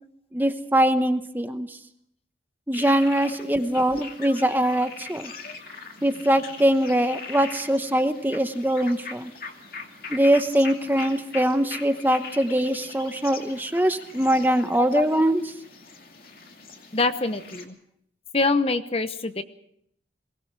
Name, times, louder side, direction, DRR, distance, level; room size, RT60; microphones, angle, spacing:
voice 1, 0.3-1.8 2.7-5.3 6.0-9.3 10.1-15.4, right 1 dB, 10° right, 8 dB, 0.9 m, -22 dB
sound 1, 2.7-17.6, left 4 dB, 50° left, 2.6 m, -41 dB
voice 2, 16.9-17.8 18.3-19.4, left 3 dB, 35° left, 10 dB, 0.9 m, -25 dB
22.0 x 19.5 x 6.1 m, 0.71 s
head